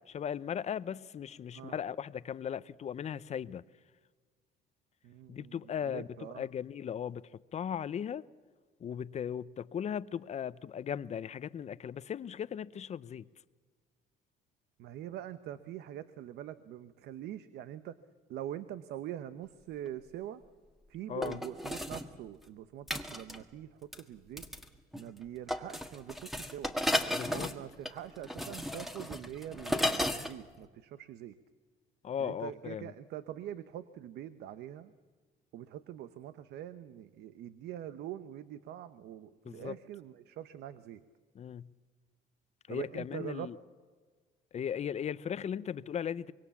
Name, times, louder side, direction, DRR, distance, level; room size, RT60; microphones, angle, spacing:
voice 1, 0.1-3.6 5.3-7.2 7.5-8.2 8.8-13.3 21.1-21.4 27.1-27.5 32.0-32.9 39.4-39.8 41.3-41.7 42.7-43.6 44.5-46.3, left 8 dB, 40° left, 0.7 m, -37 dB
voice 2, 5.0-6.4 14.8-18.0 18.3-20.4 20.9-24.5 24.9-26.7 27.3-31.4 32.2-34.9 35.5-41.0 42.7-43.5, right 11 dB, 75° right, 0.9 m, -44 dB
sound 1, 19.9-20.0 21.2-22.1 22.9-23.4 23.9-24.0 24.4-24.7 24.9-25.2 25.5-30.3 30.6-30.7, left 1 dB, ahead, 1.6 m, -34 dB
25.0 x 22.5 x 7.2 m
cardioid pair, 110°, 17 cm